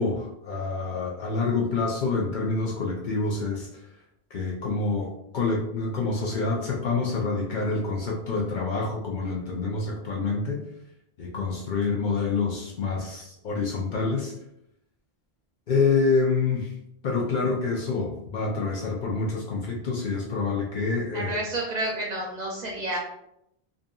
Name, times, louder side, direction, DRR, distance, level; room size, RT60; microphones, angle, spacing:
voice 1, 0.0-3.7 4.3-10.6 11.2-14.3 15.7-16.7 17.0-21.4, left 4 dB, 60° left, -2 dB, 0.6 m, -27 dB
voice 2, 21.1-23.0, right 1 dB, 55° right, -2 dB, 0.5 m, -30 dB
2.6 x 2.6 x 2.2 m, 0.78 s
omnidirectional pair, 1.1 m